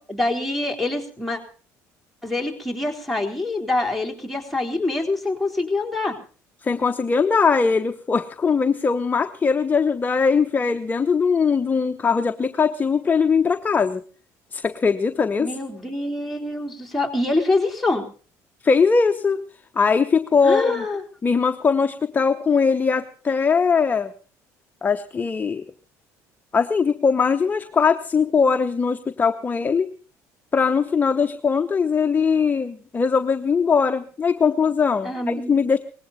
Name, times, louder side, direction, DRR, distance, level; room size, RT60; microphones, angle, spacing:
voice 1, 0.1-1.4 2.2-6.2 15.4-18.0 20.4-21.0 35.0-35.6, left 2 dB, ahead, 0 dB, 3.8 m, -25 dB
voice 2, 6.6-14.0 14.5-15.5 18.6-19.4 19.7-20.8 21.2-24.1 24.8-25.6 26.5-29.9 30.5-35.8, left 5 dB, 25° left, 8 dB, 0.9 m, -20 dB
19.5 x 16.5 x 4.1 m, 0.39 s
supercardioid pair, 85°, 7 cm